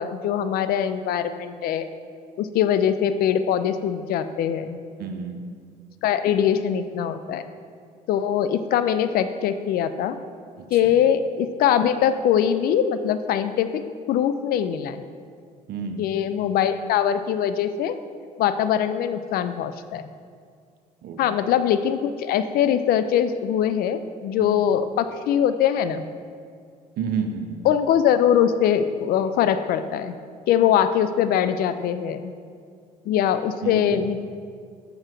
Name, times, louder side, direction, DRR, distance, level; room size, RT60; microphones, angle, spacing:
voice 1, 0.0-1.9 2.4-4.8 6.0-7.4 8.1-10.2 10.7-13.8 14.1-15.0 16.0-18.0 18.4-20.1 21.2-26.0 27.6-30.1 30.5-32.3 33.1-34.2, left 9 dB, 45° left, 11 dB, 0.4 m, -22 dB
voice 2, 5.0-5.4 10.6-11.0 15.7-16.0 21.0-21.2 24.4-24.5 27.0-27.6 33.6-34.0, right 6 dB, 50° right, 5 dB, 0.7 m, -30 dB
7.2 x 6.3 x 3.2 m, 2.1 s
figure-of-eight pair, 50°, 21 cm